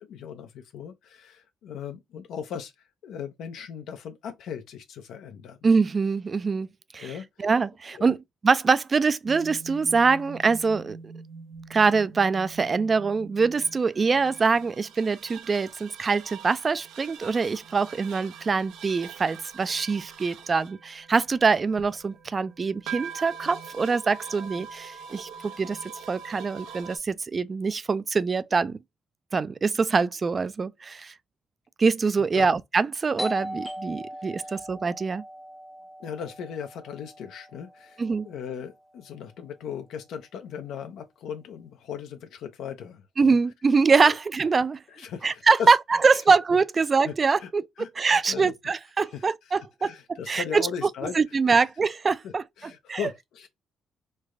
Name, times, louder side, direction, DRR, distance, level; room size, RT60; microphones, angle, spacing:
voice 1, 0.0-2.7 3.0-5.6 7.0-7.5 7.9-8.2 32.3-32.5 34.1-34.6 36.0-43.4 44.0-44.2 44.9-45.8 46.1-46.2 47.0-47.1 47.4-47.5 47.8-48.5 49.0-51.2 51.5-51.7 52.2-53.5, left 8 dB, 80° left, 0.5 m, -38 dB
voice 2, 5.6-6.7 6.9-7.1 7.4-8.2 8.4-11.1 11.7-25.8 26.1-28.8 29.3-31.1 31.8-35.2 38.0-38.3 43.2-44.8 45.2-45.8 46.0-47.7 48.0-50.7 51.1-52.4 52.9-53.0, right 4 dB, 35° right, 0.3 m, -24 dB
sound 1, 9.3-27.0, right 6 dB, 90° right, 0.6 m, -43 dB
Doorbell, 33.2-38.6, equal, 5° left, 0.6 m, -39 dB
3.2 x 2.1 x 3.5 m
cardioid pair, 90°, 0 cm